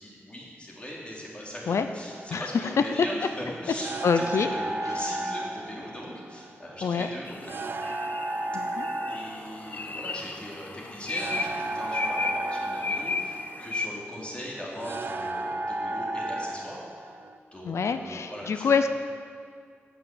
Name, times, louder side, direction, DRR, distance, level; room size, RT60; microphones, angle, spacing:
voice 1, 0.0-7.7 9.1-17.1 17.5-18.9, equal, 25° left, -4 dB, 3.0 m, -40 dB
sound 1, 2.1-17.4, right 2 dB, 50° right, 0.5 m, -34 dB
voice 2, 2.3-2.7 4.0-4.5 6.8-7.1 8.5-8.9 17.6-18.9, left 5 dB, 85° left, 9 dB, 0.6 m, -26 dB
sound 2, 7.3-13.9, left 3 dB, 45° left, 0.6 m, -34 dB
11.0 x 8.8 x 8.0 m, 2.2 s
wide cardioid pair, 140°, 5 cm